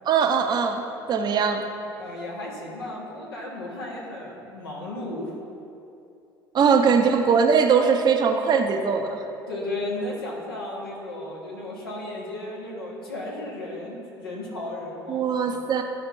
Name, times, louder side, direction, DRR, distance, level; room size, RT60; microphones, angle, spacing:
voice 1, 0.0-1.6 6.5-9.2 15.1-15.8, right 6 dB, 35° right, 5 dB, 0.7 m, -21 dB
voice 2, 1.9-5.4 6.8-7.0 9.5-15.6, left 1 dB, 80° left, -3 dB, 1.4 m, -34 dB
12.5 x 5.1 x 2.6 m, 2.7 s
figure-of-eight pair, 65°, 12 cm